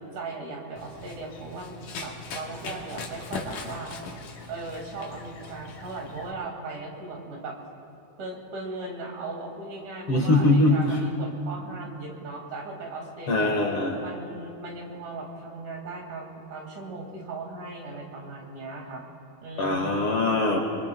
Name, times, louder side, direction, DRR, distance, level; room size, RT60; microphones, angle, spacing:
voice 1, 0.1-4.0 4.5-7.6 8.2-13.6 14.0-19.0 19.4-20.1, right 3 dB, 75° right, 0 dB, 3.7 m, -38 dB
Run, 0.8-6.3, left 4 dB, 85° left, 3.0 m, -40 dB
voice 2, 10.1-11.0 13.3-14.0 19.6-20.6, left 2 dB, 50° left, 0 dB, 2.0 m, -22 dB
25.0 x 23.0 x 2.3 m, 2.7 s
omnidirectional pair, 3.6 m